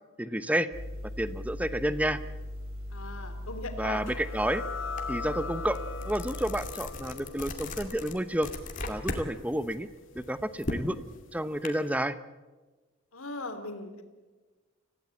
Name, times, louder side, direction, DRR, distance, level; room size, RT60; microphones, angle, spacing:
voice 1, 0.2-0.7 1.2-2.2 3.8-4.6 5.1-5.8 6.1-8.5 8.9-9.9 10.1-11.0 11.3-12.2, right 1 dB, 5° right, 13 dB, 0.7 m, -30 dB
sound 1, 0.7-6.7, left 1 dB, 80° right, 6.0 m, -39 dB
voice 2, 2.9-4.0 13.1-14.0, left 2 dB, 80° left, 7 dB, 3.0 m, -39 dB
sound 2, 4.1-11.3, left 4 dB, 60° left, 1.0 m, -42 dB
sound 3, 5.0-5.1 5.5-9.3 9.6-11.7, left 2 dB, 35° left, 2.4 m, -37 dB
26.5 x 16.5 x 8.5 m, 1.3 s
head